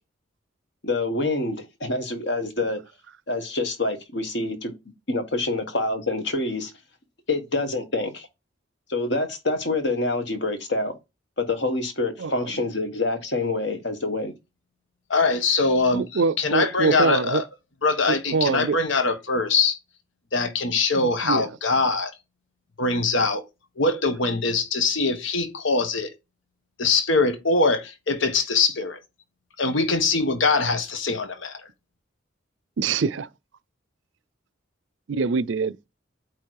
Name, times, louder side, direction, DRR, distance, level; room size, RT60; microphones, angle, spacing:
voice 1, 0.8-2.8 3.3-4.7 5.1-6.7 7.3-8.3 8.9-10.9 11.4-14.3, left 2 dB, 60° left, 1.6 m, -26 dB
voice 2, 15.1-17.4 17.8-19.8 20.3-22.1 22.8-23.4 23.8-26.1 26.8-29.0 29.6-31.7, left 3 dB, 80° left, 1.2 m, -23 dB
voice 3, 15.9-17.4 18.3-18.8 21.0-21.5 32.8-33.3 35.1-35.7, right 4 dB, 70° right, 0.5 m, -24 dB
8.4 x 3.1 x 4.8 m
head